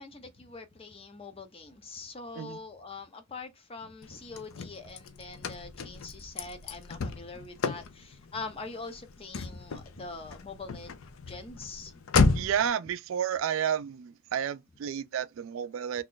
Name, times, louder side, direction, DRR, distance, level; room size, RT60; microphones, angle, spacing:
voice 1, 0.0-11.0 11.3-12.0, left 3 dB, 25° left, 0.6 m, -43 dB
Car / Slam, 4.0-12.7, left 4 dB, 85° left, 0.5 m, -33 dB
voice 2, 12.3-16.0, right 9 dB, 70° right, 0.3 m, -31 dB
3.0 x 2.4 x 3.7 m
head